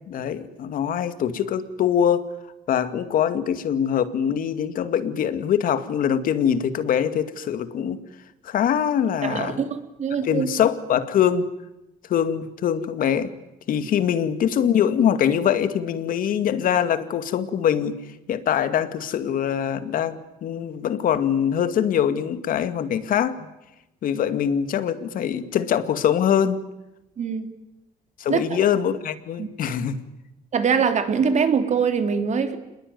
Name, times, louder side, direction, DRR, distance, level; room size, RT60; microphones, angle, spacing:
voice 1, 0.1-2.3 2.7-8.0 8.4-9.6 10.2-11.5 12.1-13.3 13.7-18.0 18.3-23.4 24.0-26.6 28.2-30.0, left 9 dB, 70° left, 11 dB, 2.2 m, -23 dB
voice 2, 9.2-10.5 27.2-27.5 28.3-28.6 29.4-29.5 30.5-32.6, right 6 dB, 50° right, 8 dB, 3.3 m, -23 dB
27.5 x 21.0 x 9.4 m, 0.93 s
cardioid pair, 85°, 15 cm